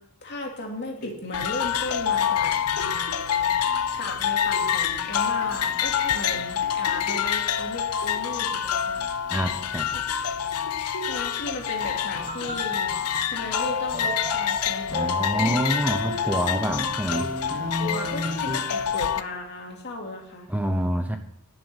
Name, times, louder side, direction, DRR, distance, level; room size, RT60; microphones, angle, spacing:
voice 1, 0.2-9.0 9.9-10.0 11.1-12.9 13.3-15.6 17.8-20.5, left 2 dB, 50° left, 1 dB, 2.7 m, -36 dB
sound 1, 0.9-17.8 18.4-18.5, equal, 70° left, 2.7 m, -45 dB
sound 2, 1.3-19.2, left 8 dB, 85° left, 0.7 m, -27 dB
voice 2, 9.3-9.9 14.9-17.3 20.5-21.2, right 1 dB, 5° right, 6 dB, 0.8 m, -26 dB
sound 3, 11.8-18.9, right 1 dB, 35° right, 1.2 m, -35 dB
11.0 x 6.4 x 9.1 m, 0.75 s
head